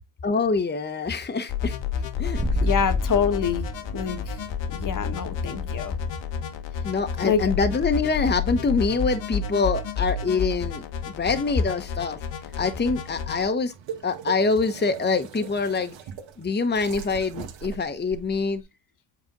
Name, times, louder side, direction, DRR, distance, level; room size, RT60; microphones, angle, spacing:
voice 1, 0.2-1.8 2.2-2.6 6.8-12.2 12.6-13.7 14.0-15.9 16.4-18.6, left 4 dB, 20° left, 1.0 m, -25 dB
sound 1, 1.5-13.5, left 6 dB, 70° left, 1.5 m, -31 dB
sound 2, 2.3-7.8, left 2 dB, 5° right, 1.2 m, -31 dB
voice 2, 2.6-3.7 3.9-4.4 4.7-5.9 7.2-7.4, left 7 dB, 45° left, 1.3 m, -25 dB
sound 3, 12.4-18.6, right 8 dB, 75° right, 1.6 m, -41 dB
8.4 x 4.1 x 4.0 m
supercardioid pair, 70°, 45 cm